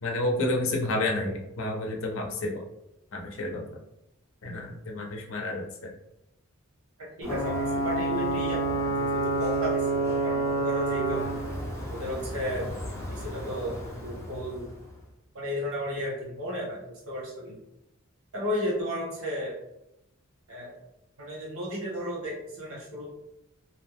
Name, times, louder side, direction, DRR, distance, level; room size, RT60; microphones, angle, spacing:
voice 1, 0.0-2.6 3.1-3.6 4.4-5.9, left 2 dB, 65° left, 1 dB, 0.6 m, -30 dB
voice 2, 7.0-11.3 11.9-12.7 13.1-14.7 15.3-17.6 18.3-19.6 20.5-20.8 21.2-23.1, equal, 75° right, -4 dB, 1.2 m, -34 dB
Ocean / Boat Water vehicle / Alarm, 7.2-14.8, right 2 dB, 15° left, 0.5 m, -29 dB
2.5 x 2.2 x 3.4 m, 0.86 s
head